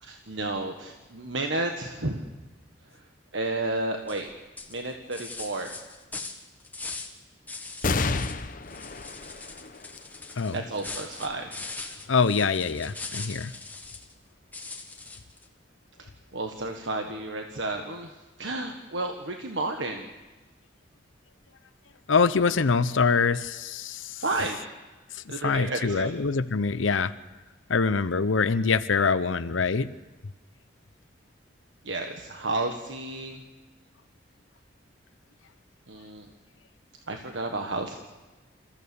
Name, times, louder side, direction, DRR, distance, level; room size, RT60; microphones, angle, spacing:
voice 1, 0.0-2.2 2.9-3.0 3.3-4.3 4.7-5.7 10.5-11.6 16.0-20.1 24.2-24.7 25.3-26.1 31.8-33.4 35.9-36.3 37.1-38.0, right 2 dB, 80° right, 4 dB, 1.5 m, -32 dB
sound 1, 4.1-4.3 4.6-7.2 7.5-8.4 8.7-14.1 14.5-15.4, left 3 dB, 10° left, 1.3 m, -40 dB
sound 2, 7.8-14.7 15.3-15.4 16.5-17.1, left 3 dB, 45° left, 0.8 m, -35 dB
voice 2, 12.1-13.5 22.1-24.2 25.1-27.1 27.7-29.9, left 5 dB, 90° left, 12 dB, 0.7 m, -24 dB
28.0 x 15.0 x 7.0 m, 1.2 s
head